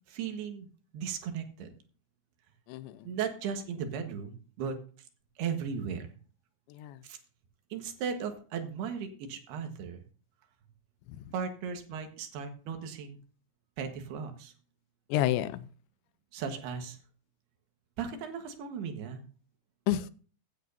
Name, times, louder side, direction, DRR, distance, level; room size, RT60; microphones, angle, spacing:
voice 1, 0.1-0.7 0.9-1.7 3.0-4.8 5.4-6.1 7.0-7.2 7.7-10.0 11.3-13.2 13.8-14.5 16.3-17.0 18.0-19.2, right 6 dB, 65° right, 3.1 m, -36 dB
voice 2, 2.7-3.1 6.7-7.0 11.1-11.3 15.1-15.7 19.9-20.1, left 12 dB, 80° left, 2.8 m, -30 dB
15.5 x 10.5 x 2.7 m
omnidirectional pair, 5.5 m